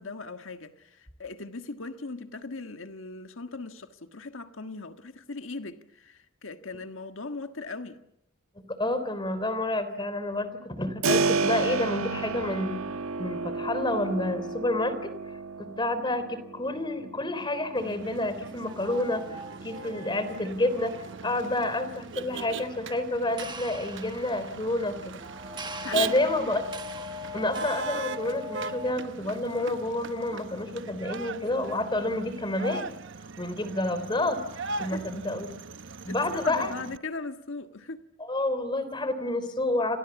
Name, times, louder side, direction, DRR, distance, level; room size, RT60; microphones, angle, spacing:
voice 1, 0.0-8.0 25.6-26.3 34.8-35.1 36.1-38.0, left 3 dB, 65° left, 1.6 m, -39 dB
voice 2, 8.6-12.8 13.2-15.1 15.6-20.9 21.2-25.2 25.9-26.6 27.3-32.9 33.4-34.4 34.8-35.5 36.0-36.7 38.2-40.0, left 1 dB, 20° left, 3.4 m, -29 dB
Keyboard (musical), 11.0-21.7, right 4 dB, 90° right, 1.5 m, -33 dB
Motor vehicle (road), 17.8-37.0, right 4 dB, 60° right, 1.0 m, -40 dB
sound 1, 18.6-22.8 23.1-23.2 23.4-28.9, left 2 dB, 20° right, 1.4 m, -41 dB
29.5 x 27.0 x 7.2 m
head